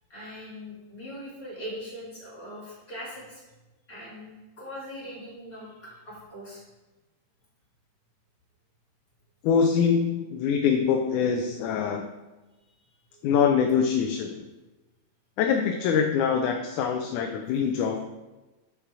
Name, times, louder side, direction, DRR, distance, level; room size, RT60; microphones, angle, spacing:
voice 1, 0.1-3.4 3.9-6.6 13.1-13.2 13.9-14.2, equal, 30° left, -7 dB, 3.2 m, -41 dB
voice 2, 9.4-12.1 13.2-14.3 15.4-18.0, left 6 dB, 85° left, 3 dB, 2.1 m, -24 dB
6.8 x 5.9 x 4.7 m, 1.1 s
omnidirectional pair, 3.4 m